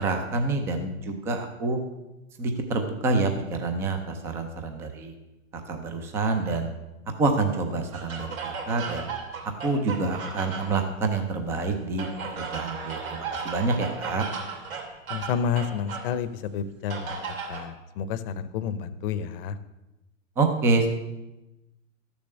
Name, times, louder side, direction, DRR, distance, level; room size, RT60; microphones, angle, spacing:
voice 1, 0.0-1.8 2.4-5.2 5.5-6.7 7.2-9.1 9.6-12.1 12.4-14.2 20.4-20.9, right 3 dB, 5° right, 6 dB, 0.4 m, -27 dB
sound 1, 7.9-10.9 12.0-16.1 16.9-17.7, right 5 dB, 85° right, 3.3 m, -35 dB
voice 2, 15.1-17.2 17.5-19.6, left 7 dB, 45° left, 13 dB, 0.8 m, -30 dB
13.0 x 7.1 x 6.5 m, 1.0 s
hypercardioid pair, 145°, 41 cm